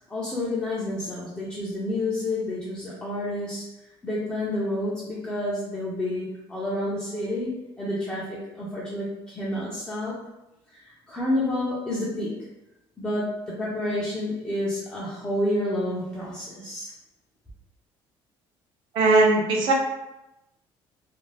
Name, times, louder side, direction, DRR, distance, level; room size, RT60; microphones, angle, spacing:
voice 1, 0.1-3.7 4.0-10.2 10.7-12.4 13.0-16.9, left 1 dB, 10° left, -8 dB, 0.4 m, -29 dB
voice 2, 18.9-19.7, right 2 dB, 60° right, 1 dB, 0.6 m, -19 dB
2.5 x 2.0 x 3.1 m, 0.94 s
cardioid pair, 165°, 9 cm